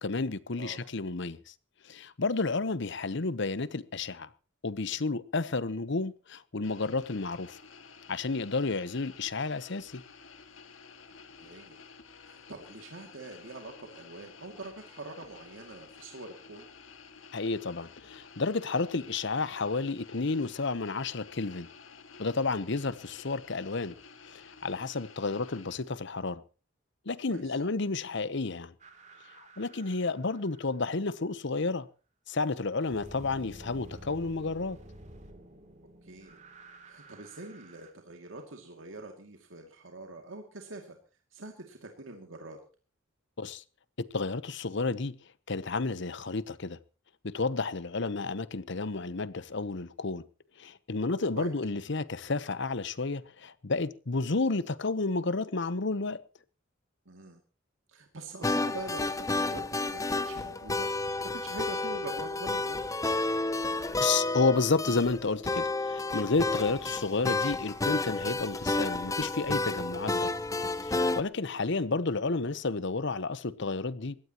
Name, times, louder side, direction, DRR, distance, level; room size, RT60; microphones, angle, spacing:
voice 1, 0.0-1.5 1.8-4.3 4.6-7.6 8.1-10.0 17.3-21.7 22.2-23.9 24.3-26.4 27.1-28.7 29.6-31.9 32.3-34.8 43.4-43.6 44.1-45.1 45.5-46.8 47.2-50.2 50.6-56.2 64.0-70.3 70.8-74.2, left 3 dB, 65° left, 0.9 m, -31 dB
sound 1, 6.6-25.8, left 5 dB, 90° left, 2.1 m, -52 dB
voice 2, 11.4-11.8 12.2-16.7 27.3-27.6 36.0-36.4 36.8-41.0 41.3-42.6 51.3-51.5 57.1-57.4 57.9-60.9 61.3-62.8, right 2 dB, 85° right, 2.5 m, -44 dB
sound 2, 28.8-31.1 32.8-37.9, right 1 dB, 40° right, 2.9 m, -51 dB
sound 3, 58.4-71.2, left 2 dB, 15° left, 0.8 m, -31 dB
22.0 x 17.0 x 3.0 m
head